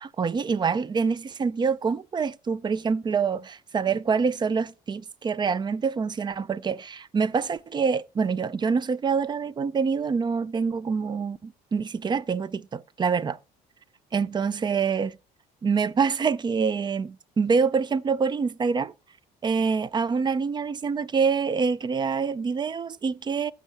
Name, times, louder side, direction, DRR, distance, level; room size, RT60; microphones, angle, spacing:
voice 1, 0.0-13.4 14.1-15.2 15.6-18.9 19.4-23.5, right 5 dB, 25° right, 0.4 m, -26 dB
15.5 x 6.2 x 3.4 m
cardioid pair, 110°, 17 cm